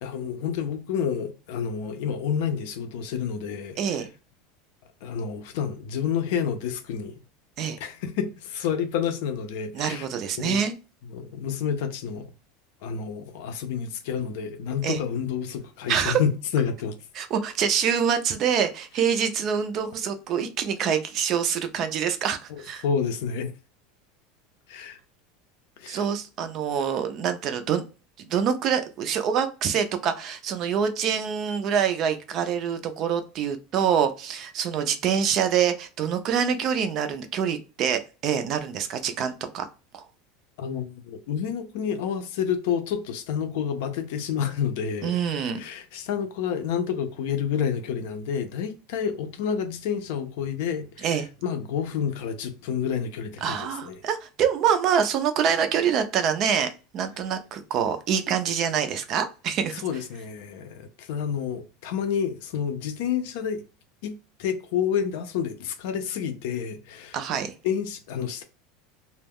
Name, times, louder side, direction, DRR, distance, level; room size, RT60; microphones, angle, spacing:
voice 1, 0.0-4.1 5.0-7.2 7.8-10.1 10.4-10.6 11.1-12.3 12.8-17.0 22.5-23.5 24.7-25.0 25.8-26.1 40.6-45.2 45.5-54.0 59.8-63.6 64.0-64.1 64.4-67.2 67.6-68.4, left 7 dB, 65° left, 0.5 m, -29 dB
voice 2, 3.8-4.1 7.6-7.8 9.7-10.7 14.8-15.0 15.9-16.2 17.1-22.8 25.9-27.8 28.2-39.7 39.9-40.0 45.0-45.6 51.0-51.3 53.4-59.8 67.1-67.5, right 7 dB, 35° right, 0.4 m, -25 dB
2.2 x 2.1 x 3.4 m
supercardioid pair, 160°, 0 cm